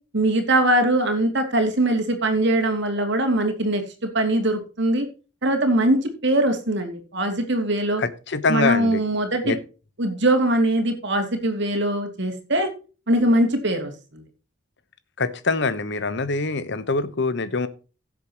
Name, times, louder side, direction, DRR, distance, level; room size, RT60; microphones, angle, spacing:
voice 1, 0.1-5.1 5.4-8.0 8.5-9.6 10.0-12.7 13.1-14.2, right 1 dB, 60° right, 5 dB, 2.8 m, -22 dB
voice 2, 8.0-9.0 9.4-9.6 15.2-17.7, left 3 dB, 60° left, 14 dB, 1.1 m, -24 dB
16.5 x 7.6 x 3.0 m, 0.34 s
head